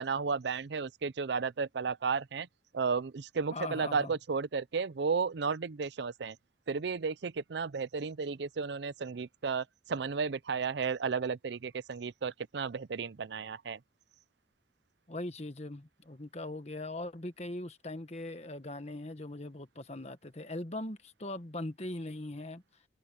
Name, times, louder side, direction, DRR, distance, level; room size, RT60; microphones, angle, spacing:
voice 1, 0.0-2.5 2.7-6.4 6.7-13.8, right 5 dB, 65° right, 0.5 m, -33 dB
voice 2, 3.5-4.1 15.1-22.6, left 2 dB, 35° left, 1.5 m, -40 dB
head